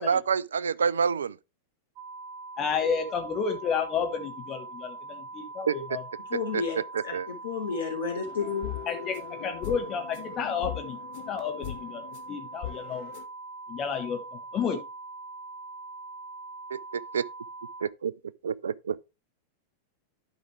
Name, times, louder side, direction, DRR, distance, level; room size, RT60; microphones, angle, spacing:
voice 1, 0.0-1.3 5.7-5.8 6.5-6.6 6.9-7.3 16.7-17.2 17.8-18.1 18.4-19.0, right 6 dB, 70° right, 0.3 m, -27 dB
sound 1, 2.0-17.8, right 3 dB, 50° right, 1.2 m, -42 dB
voice 2, 2.6-6.0 8.9-9.2 9.4-11.0 11.3-12.0 12.3-13.1 13.7-14.8, left 6 dB, 30° left, 1.3 m, -31 dB
voice 3, 6.3-8.7, left 5 dB, 70° left, 3.3 m, -32 dB
sound 2, 8.2-13.2, left 12 dB, 50° left, 0.8 m, -40 dB
11.5 x 4.9 x 3.3 m
figure-of-eight pair, 90°, 0 cm